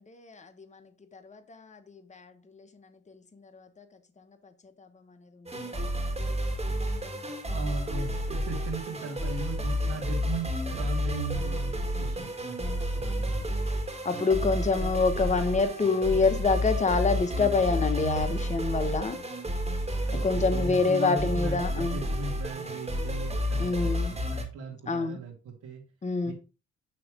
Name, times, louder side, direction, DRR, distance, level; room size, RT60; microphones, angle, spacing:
voice 1, 0.1-0.8 1.1-2.7 3.5-3.8 4.8-4.9 12.7-13.0 14.0-19.2 20.2-22.0 23.6-24.1 24.9-25.2 26.0-26.3, left 4 dB, 25° left, 1.1 m, -27 dB
sound 1, 5.5-24.4, equal, 20° right, 2.0 m, -31 dB
voice 2, 7.5-13.5 14.1-14.2 20.0-25.8 26.2-26.3, right 3 dB, 80° right, 2.2 m, -38 dB
9.4 x 3.2 x 4.9 m
cardioid pair, 90°, 30 cm